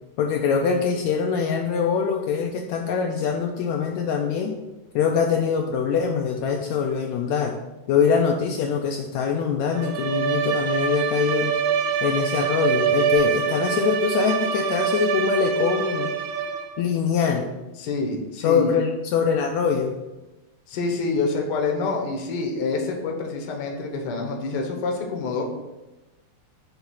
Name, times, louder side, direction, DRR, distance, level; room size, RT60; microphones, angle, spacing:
voice 1, 0.2-4.5 5.0-7.6 7.9-11.5 12.0-16.1 16.8-17.5 18.4-19.9, left 6 dB, 80° left, 2 dB, 1.7 m, -23 dB
Bowed string instrument, 9.7-16.8, right 7 dB, 80° right, 2.1 m, -25 dB
voice 2, 17.8-18.7 20.7-25.4, left 3 dB, 60° left, 0 dB, 1.1 m, -27 dB
8.0 x 3.5 x 5.7 m, 1.1 s
omnidirectional pair, 3.6 m